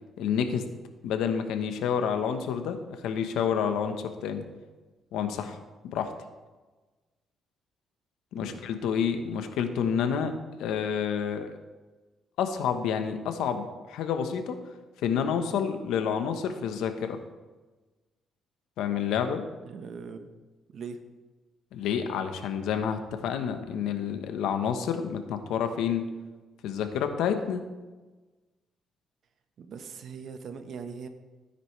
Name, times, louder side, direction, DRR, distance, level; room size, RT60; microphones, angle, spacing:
voice 1, 0.2-0.6 1.0-2.8 3.0-4.4 5.1-5.6 5.8-6.1 8.3-10.3 10.6-11.5 12.4-14.6 15.0-17.2 18.8-19.4 21.7-26.0 26.6-27.6, left 7 dB, 90° left, 7 dB, 1.2 m, -29 dB
voice 2, 19.6-20.3 20.7-21.0 29.6-31.1, right 5 dB, 65° right, 8 dB, 1.2 m, -40 dB
16.0 x 9.8 x 3.4 m, 1.2 s
cardioid pair, 90°, 0 cm